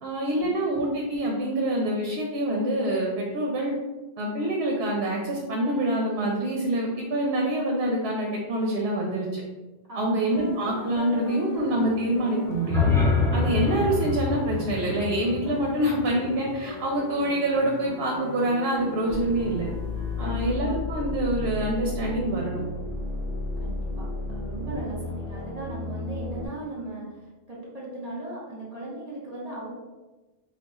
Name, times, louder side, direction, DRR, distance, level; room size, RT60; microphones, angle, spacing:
voice 1, 0.0-3.7 4.2-9.4 10.0-12.9 13.3-19.7 20.2-22.6, right 1 dB, 75° right, -1 dB, 0.8 m, -26 dB
voice 2, 9.9-10.5 20.2-20.5 23.6-27.2 27.5-29.7, right 2 dB, 40° right, -5 dB, 1.1 m, -37 dB
sound 1, 10.3-20.6, left 2 dB, 50° left, 0.6 m, -40 dB
sound 2, 12.5-16.6, left 4 dB, 5° left, 0.3 m, -26 dB
sound 3, 19.1-26.5, left 2 dB, 70° left, 0.9 m, -32 dB
2.4 x 2.3 x 4.0 m, 1.1 s
omnidirectional pair, 1.1 m